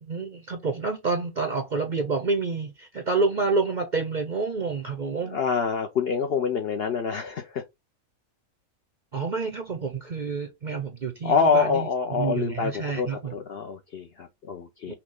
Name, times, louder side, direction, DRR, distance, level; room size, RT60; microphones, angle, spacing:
voice 1, 0.0-5.4 9.1-13.4 14.9-15.0, right 4 dB, 50° right, 0.5 m, -28 dB
voice 2, 5.2-7.6 11.2-14.9, left 5 dB, 60° left, 0.6 m, -26 dB
5.8 x 2.2 x 3.7 m
omnidirectional pair, 1.5 m